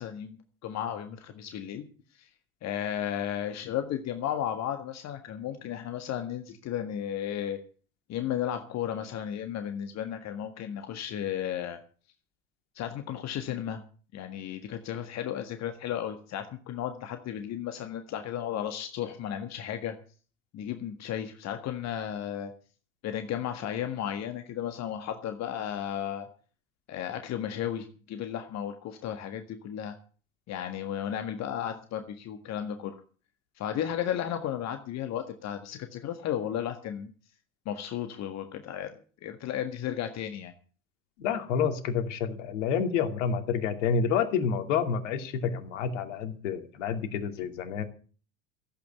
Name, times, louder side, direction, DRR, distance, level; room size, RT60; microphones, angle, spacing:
voice 1, 0.0-1.9 2.1-2.3 2.6-7.6 8.1-11.8 12.8-13.8 14.1-20.0 20.5-22.5 23.0-26.3 26.9-30.0 30.5-32.9 33.6-37.1 37.7-38.9 39.2-40.5, left 10 dB, 40° left, 7 dB, 1.7 m, -34 dB
voice 2, 41.2-47.8, left 6 dB, 65° left, 8 dB, 2.6 m, -29 dB
15.0 x 8.6 x 8.1 m, 0.40 s
figure-of-eight pair, 75°, 40 cm